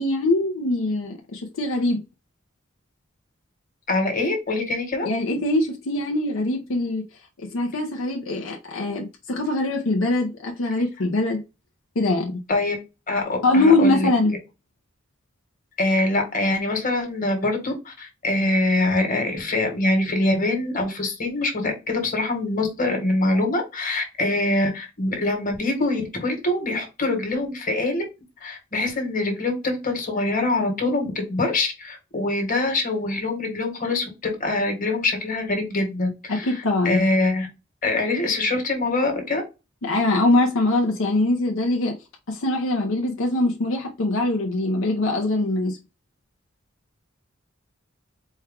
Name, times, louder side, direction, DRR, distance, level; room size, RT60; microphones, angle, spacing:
voice 1, 0.0-2.0 5.0-7.0 7.4-11.4 12.0-12.4 13.4-14.3 36.3-37.0 39.8-42.0 42.3-45.8, left 2 dB, 75° left, 0.7 m, -22 dB
voice 2, 3.9-5.1 12.5-12.7 13.1-14.1 15.8-28.0 28.4-36.5 36.8-37.5 37.8-39.4, left 2 dB, 40° left, 1.4 m, -24 dB
4.4 x 2.3 x 3.5 m
head